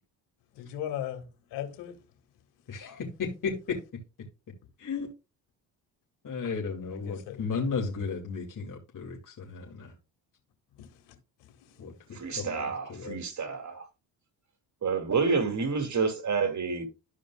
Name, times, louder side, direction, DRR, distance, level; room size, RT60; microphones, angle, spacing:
voice 1, 0.6-2.0 7.1-7.5 10.8-11.1 11.6-11.8, left 11 dB, 90° left, 1.9 m, -38 dB
voice 2, 2.7-4.0 4.8-5.1 6.2-9.9 11.8-13.2, left 5 dB, 50° left, 2.7 m, -34 dB
voice 3, 12.1-13.8 14.8-16.9, right 5 dB, 45° right, 2.3 m, -29 dB
13.0 x 5.0 x 2.4 m
supercardioid pair, 65°, 41 cm